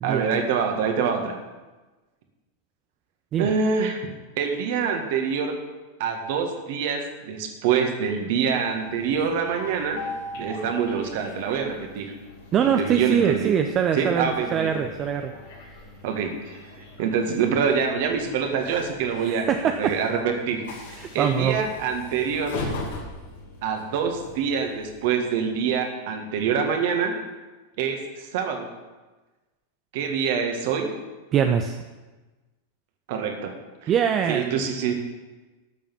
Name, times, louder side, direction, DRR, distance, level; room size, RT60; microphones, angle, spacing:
voice 1, 0.0-1.4 3.4-4.1 4.4-5.5 6.0-10.0 10.4-12.1 12.7-13.5 14.0-14.7 16.0-16.6 17.0-20.6 20.9-22.6 23.6-27.1 27.8-28.7 29.9-30.9 33.1-33.5 33.8-33.9 34.3-34.9, right 6 dB, 50° right, 4 dB, 1.8 m, -25 dB
Train, 8.5-25.7, left 2 dB, 55° left, 2.4 m, -40 dB
voice 2, 12.5-15.3 19.2-20.0 21.0-21.6 31.3-31.8 33.9-34.6, right 8 dB, 30° right, 6 dB, 0.7 m, -23 dB
12.0 x 7.2 x 7.3 m, 1.2 s
figure-of-eight pair, 90°, 0 cm